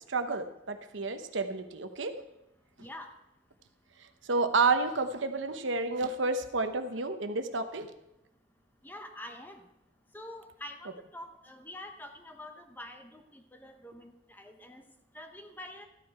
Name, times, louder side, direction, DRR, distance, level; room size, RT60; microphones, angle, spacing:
voice 1, 0.1-2.1 4.3-7.9, right 3 dB, 75° right, 8 dB, 0.9 m, -30 dB
voice 2, 2.8-3.1 8.8-9.7 10.1-14.8 15.1-15.9, left 1 dB, 10° left, 5 dB, 0.8 m, -46 dB
13.5 x 9.6 x 4.6 m, 0.88 s
head